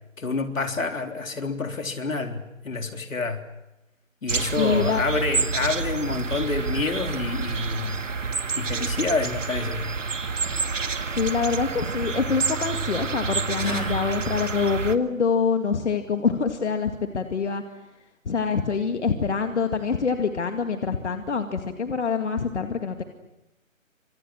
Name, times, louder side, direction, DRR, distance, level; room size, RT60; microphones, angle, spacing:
voice 1, 0.2-3.4 4.2-8.0 8.6-9.9 13.6-14.0, left 3 dB, 75° left, 5 dB, 3.8 m, -28 dB
sound 1, 4.3-15.0, right 4 dB, 65° right, 2.1 m, -28 dB
voice 2, 4.6-5.0 11.1-17.6 18.3-23.0, left 5 dB, 55° left, 6 dB, 2.2 m, -25 dB
29.5 x 27.0 x 6.3 m, 0.95 s
figure-of-eight pair, 165°, 40 cm